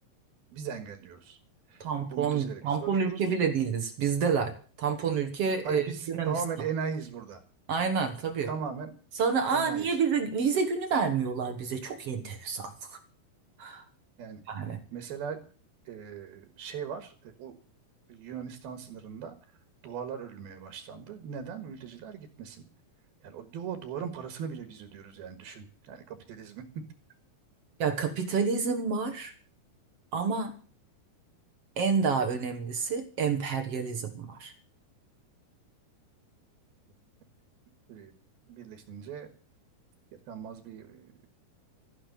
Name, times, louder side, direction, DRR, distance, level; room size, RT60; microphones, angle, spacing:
voice 1, 0.5-1.4 1.7-3.2 5.6-7.4 8.4-8.9 9.5-10.0 14.2-14.4 14.9-15.4 15.8-17.5 18.1-19.4 19.8-22.6 23.2-26.6 37.9-38.1 38.5-39.3 40.3-41.3, right 7 dB, 75° right, 8 dB, 3.5 m, -39 dB
voice 2, 1.8-6.3 7.7-8.5 9.2-13.0 13.6-13.8 14.5-14.8 27.8-29.3 30.1-30.5 31.8-34.5, right 6 dB, 60° right, 7 dB, 1.7 m, -29 dB
14.0 x 10.0 x 9.2 m, 0.41 s
omnidirectional pair, 4.5 m